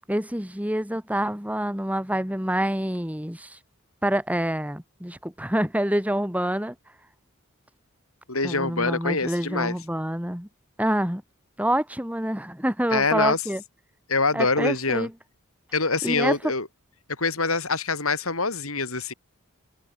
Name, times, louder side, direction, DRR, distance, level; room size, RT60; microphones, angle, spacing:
voice 1, 0.0-3.6 4.0-6.7 8.4-10.5 10.8-11.2 11.6-13.6 14.3-15.1 16.0-16.5, right 1 dB, 5° right, 4.2 m, -27 dB
voice 2, 8.3-9.7 12.9-13.4 14.1-15.1 15.7-16.7 17.2-19.1, left 3 dB, 80° left, 6.4 m, -25 dB
head